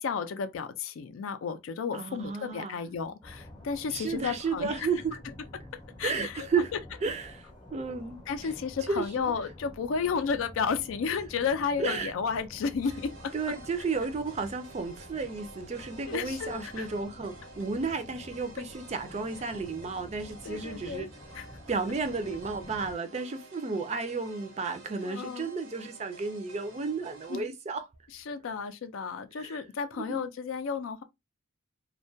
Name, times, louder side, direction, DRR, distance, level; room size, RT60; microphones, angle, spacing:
voice 1, 0.0-4.9 6.0-6.5 8.3-13.3 16.1-16.9 20.4-21.1 21.3-21.5 25.0-25.5 27.3-27.5 28.3-31.0, left 6 dB, 80° left, 0.4 m, -32 dB
voice 2, 1.9-2.8 3.9-5.2 6.0-6.7 7.0-8.5 8.9-9.3 11.8-12.1 13.3-21.1 21.7-27.8 29.4-29.6 30.1-30.3, right 4 dB, 35° right, 0.3 m, -33 dB
sound 1, 3.2-22.9, left 1 dB, 20° left, 0.6 m, -49 dB
sound 2, 12.8-27.4, right 3 dB, 85° right, 0.7 m, -51 dB
2.2 x 2.1 x 2.5 m
head